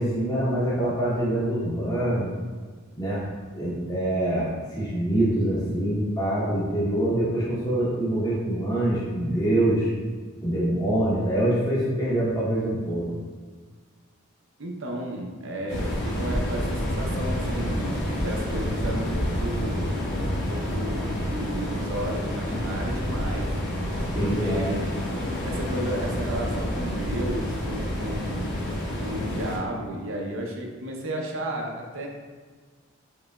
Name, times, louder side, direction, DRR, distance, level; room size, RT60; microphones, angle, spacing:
voice 1, 0.0-2.3 3.0-3.2 3.5-9.9 10.4-13.1 24.1-24.8, right 1 dB, 15° left, -8 dB, 0.8 m, -25 dB
voice 2, 14.6-20.0 20.3-23.6 24.1-24.9 25.4-28.5 29.0-32.1, right 1 dB, 60° right, 0 dB, 0.6 m, -33 dB
strong wind in the forest front, 15.7-29.6, equal, 50° left, 1.1 m, -29 dB
4.9 x 3.3 x 2.2 m, 1.5 s
head